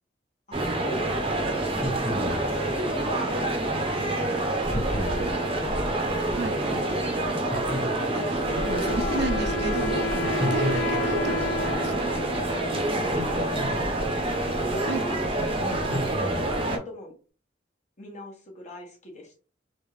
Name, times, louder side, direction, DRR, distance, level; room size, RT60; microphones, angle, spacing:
voice 1, 0.5-1.6 2.3-4.0 4.7-6.3 6.8-7.4 8.7-9.3 11.1-11.3 13.1-14.1 14.4-15.8 16.6-17.1 18.0-19.4, left 1 dB, 40° left, -1 dB, 1.2 m, -41 dB
sound 1, 0.5-16.8, right 1 dB, 30° right, 0.7 m, -27 dB
sound 2, 1.7-2.5 4.7-5.3 7.5-8.3 10.4-11.3 13.1-14.1 15.9-16.7, equal, 10° left, 1.3 m, -32 dB
voice 2, 4.3-5.9 6.3-6.9 8.1-12.1 14.9-16.1, right 2 dB, 65° right, 6 dB, 0.7 m, -34 dB
Wind instrument woodwind instrument, 8.3-13.8, left 2 dB, 75° left, 0.3 m, -33 dB
3.6 x 2.4 x 3.2 m, 0.38 s
head